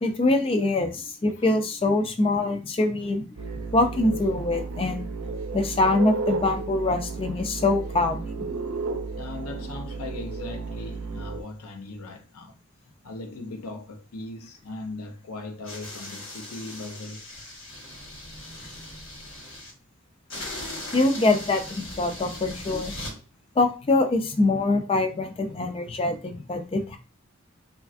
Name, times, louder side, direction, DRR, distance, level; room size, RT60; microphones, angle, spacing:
voice 1, 0.0-3.2 3.7-5.0 5.5-8.3 20.9-22.9 23.6-27.0, left 2 dB, 25° left, 0.3 m, -24 dB
sound 1, 3.4-11.4, right 3 dB, 80° right, 0.5 m, -33 dB
voice 2, 9.1-12.6 13.0-17.2, left 2 dB, 90° left, 0.6 m, -39 dB
sound 2, 15.6-19.7 20.3-23.1, left 1 dB, 65° left, 1.2 m, -39 dB
3.2 x 2.4 x 2.5 m
head